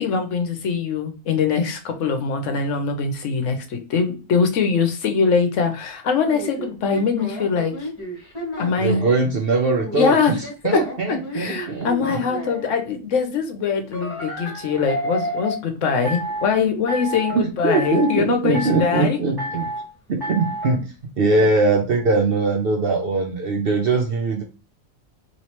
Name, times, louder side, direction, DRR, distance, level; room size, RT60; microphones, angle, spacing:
voice 1, 0.0-7.9 8.6-9.0 9.9-10.4 10.7-10.8 11.1-19.2 21.4-21.5, left 5 dB, 65° left, 6 dB, 1.0 m, -22 dB
sound 1, 6.2-9.2 9.7-12.7 13.9-15.6 16.0-16.5 16.9-17.4 17.7-18.2 18.5-19.1 19.4-19.8 20.2-20.7, equal, 15° left, 1.4 m, -30 dB
voice 2, 8.8-10.3 10.6-12.2 17.3-19.6 20.1-20.9 21.2-24.4, right 3 dB, 60° right, 1 dB, 0.6 m, -21 dB
3.1 x 3.0 x 2.9 m, 0.33 s
omnidirectional pair, 1.4 m